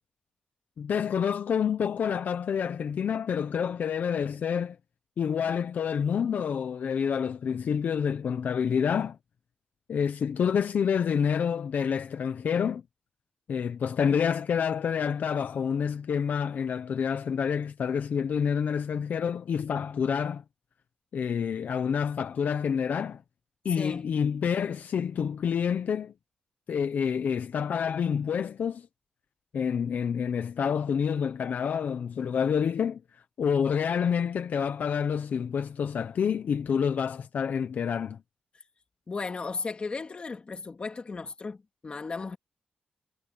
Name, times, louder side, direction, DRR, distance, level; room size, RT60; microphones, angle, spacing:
voice 1, 0.8-4.8 5.2-9.2 9.9-12.8 13.5-20.4 21.1-23.2 23.6-26.1 26.7-28.9 29.5-38.2, left 7 dB, 70° left, 0.9 m, -28 dB
voice 2, 23.8-24.1 39.1-42.4, left 4 dB, 35° left, 2.5 m, -35 dB
wide cardioid pair, 110°, 3 cm